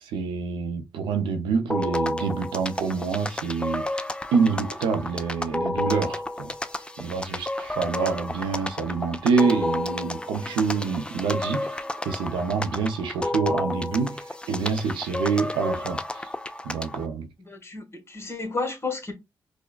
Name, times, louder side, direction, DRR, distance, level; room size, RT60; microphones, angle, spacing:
voice 1, 0.0-3.9 4.3-6.5 7.0-11.8 12.0-16.3 16.6-17.3, right 5 dB, 90° right, 0.5 m, -26 dB
sound 1, 1.7-17.1, left 1 dB, 10° left, 0.4 m, -31 dB
voice 2, 17.5-19.1, left 3 dB, 30° left, 1.2 m, -32 dB
4.7 x 2.1 x 2.2 m
supercardioid pair, 45°, 8 cm